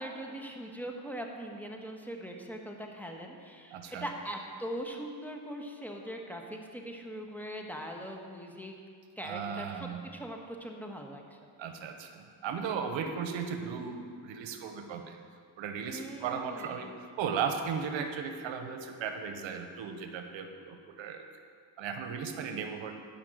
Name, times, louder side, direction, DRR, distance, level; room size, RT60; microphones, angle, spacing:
voice 1, 0.0-8.7 9.2-11.4 15.9-16.9, equal, 5° left, 1 dB, 1.3 m, -41 dB
voice 2, 3.7-4.1 9.2-10.0 11.6-15.2 15.6-21.3 21.8-22.9, right 6 dB, 75° right, 6 dB, 1.0 m, -36 dB
10.5 x 5.4 x 7.8 m, 2.2 s
cardioid pair, 80°, 46 cm